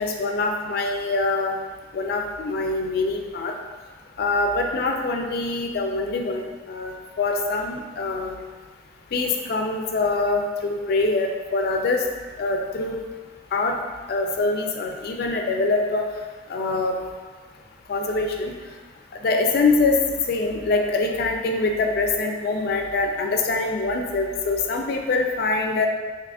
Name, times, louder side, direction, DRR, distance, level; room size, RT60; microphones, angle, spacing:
voice 1, 0.0-1.6 1.9-3.5 4.2-8.4 9.1-12.0 12.4-13.0 13.5-13.7 14.1-16.1 16.5-17.0 17.9-18.5 19.2-20.0 20.3-25.9, left 3 dB, 50° left, 2 dB, 0.4 m, -24 dB
2.8 x 2.4 x 3.4 m, 1.3 s
head